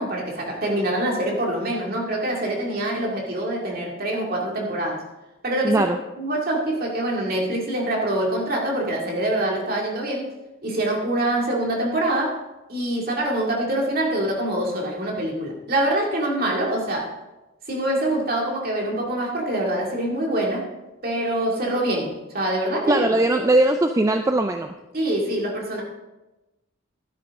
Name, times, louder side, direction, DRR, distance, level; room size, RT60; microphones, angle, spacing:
voice 1, 0.0-5.0 5.4-5.8 6.2-10.3 10.6-12.4 12.7-17.1 17.7-20.7 21.0-23.1 24.9-25.8, right 1 dB, 45° right, -1 dB, 2.3 m, -25 dB
voice 2, 5.6-6.0 22.9-24.7, right 2 dB, 15° right, 6 dB, 0.3 m, -20 dB
12.5 x 9.9 x 3.6 m, 1.0 s
head